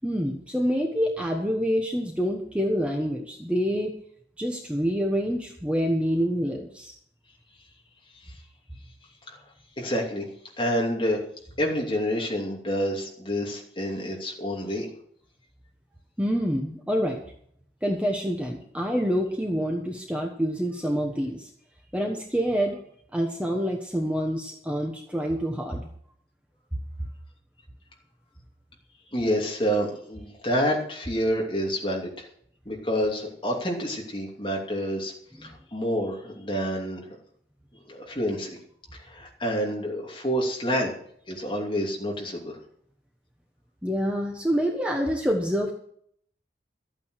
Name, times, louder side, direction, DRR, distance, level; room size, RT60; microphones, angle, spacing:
voice 1, 0.0-3.9 4.4-6.9 16.2-17.2 17.8-21.5 21.9-22.8 23.1-25.8 35.4-35.5 43.8-45.7, equal, 5° right, 0 dB, 1.2 m, -27 dB
voice 2, 9.8-10.3 10.6-11.2 11.6-14.9 29.1-32.3 32.7-35.1 35.4-37.0 37.9-38.6 39.1-40.9 41.3-42.6, equal, 30° left, -1 dB, 2.8 m, -28 dB
13.0 x 9.0 x 6.5 m, 0.65 s
head